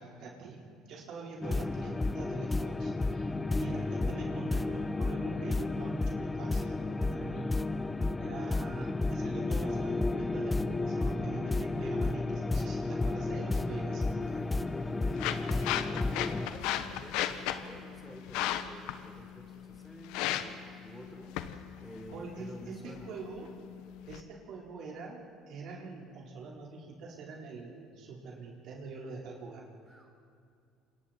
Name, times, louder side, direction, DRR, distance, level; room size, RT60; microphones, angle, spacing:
voice 1, 0.0-3.3 3.6-7.7 8.2-14.3 22.1-23.6 24.1-29.6, right 4 dB, 65° right, -2 dB, 4.4 m, -44 dB
sound 1, 1.4-16.5, left 2 dB, 15° left, 0.8 m, -32 dB
voice 2, 3.1-3.5 7.2-7.4 14.7-21.3 21.8-23.1 29.9-30.1, equal, ahead, 1 dB, 4.0 m, -50 dB
sound 2, 14.2-24.2, left 11 dB, 80° left, 1.1 m, -37 dB
28.0 x 26.5 x 4.4 m, 2.4 s
supercardioid pair, 100°, 0 cm